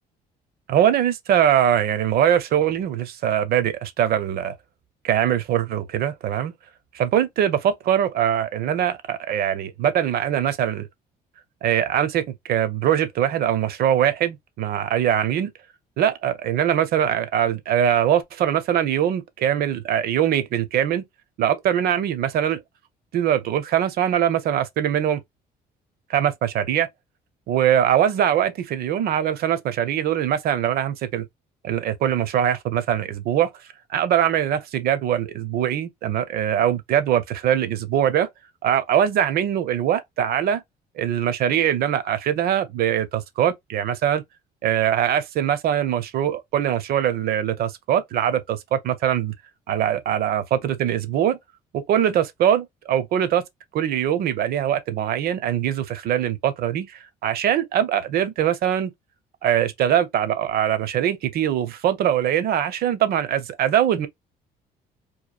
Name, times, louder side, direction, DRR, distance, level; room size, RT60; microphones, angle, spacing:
voice 1, 0.7-4.6 5.0-6.5 6.9-10.9 11.6-15.5 16.0-21.0 21.4-22.6 23.1-25.2 26.1-26.9 27.5-31.3 31.6-33.5 33.9-38.3 38.6-40.6 41.0-44.2 44.6-49.3 49.7-51.4 51.7-53.4 53.7-58.9 59.4-64.1, right 10 dB, 65° right, 0.7 m, -22 dB
3.0 x 2.4 x 2.3 m
cardioid pair, 110°, 17 cm